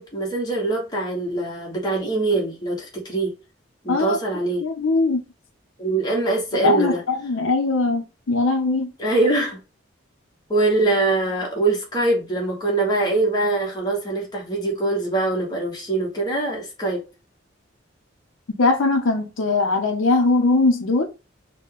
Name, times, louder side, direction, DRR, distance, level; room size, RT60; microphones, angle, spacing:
voice 1, 0.0-3.3 3.8-4.6 5.8-7.0 9.0-9.6 10.5-17.0, right 2 dB, 20° left, 1.2 m, -23 dB
voice 2, 4.6-5.2 6.6-8.9 18.6-21.0, left 3 dB, 90° left, 0.7 m, -20 dB
3.9 x 2.2 x 3.6 m
head